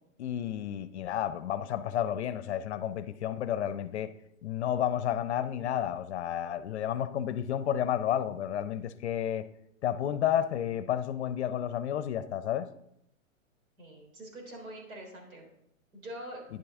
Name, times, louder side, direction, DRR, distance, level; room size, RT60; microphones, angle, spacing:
voice 1, 0.2-4.1 4.4-9.5 9.8-12.7, left 10 dB, 55° left, 0.6 m, -31 dB
voice 2, 13.8-15.5 15.9-16.4, right 1 dB, 80° right, 3.6 m, -44 dB
10.5 x 8.5 x 3.6 m
hypercardioid pair, 145°, 41 cm